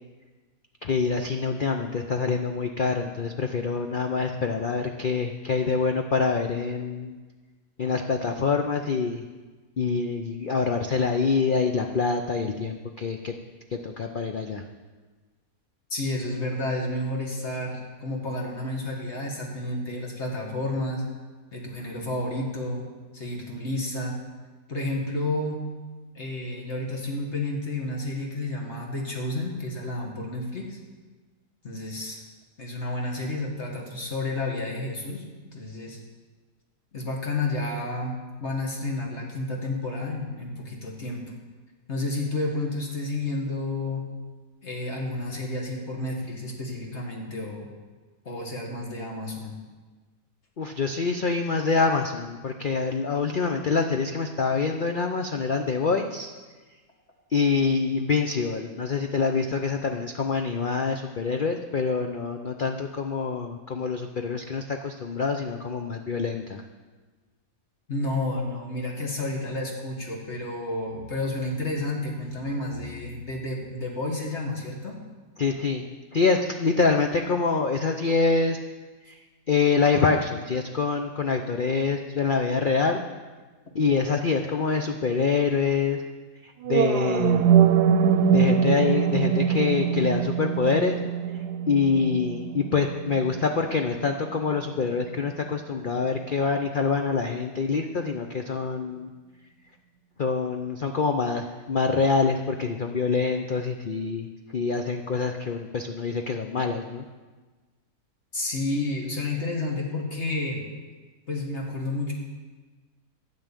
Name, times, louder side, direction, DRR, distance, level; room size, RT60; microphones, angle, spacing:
voice 1, 0.8-7.2 7.8-9.2 9.8-13.3 13.7-14.6 50.6-56.3 57.3-66.6 75.4-75.8 76.1-78.6 79.1-79.2 79.5-83.0 83.7-86.0 86.4-87.6 88.3-91.0 91.7-99.1 100.2-107.0, left 5 dB, 70° left, 4 dB, 0.4 m, -25 dB
voice 2, 15.9-21.0 21.5-22.9 23.1-24.2 24.7-25.6 26.2-30.8 31.6-32.2 32.6-35.2 35.5-36.0 36.9-41.2 41.9-44.1 44.6-47.7 48.3-49.5 67.9-75.0 108.3-110.6 111.3-112.1, left 2 dB, 45° left, 0 dB, 2.0 m, -31 dB
sound 1, 86.6-94.7, right 8 dB, 80° right, 1.2 m, -23 dB
12.5 x 5.6 x 8.9 m, 1.3 s
omnidirectional pair, 1.7 m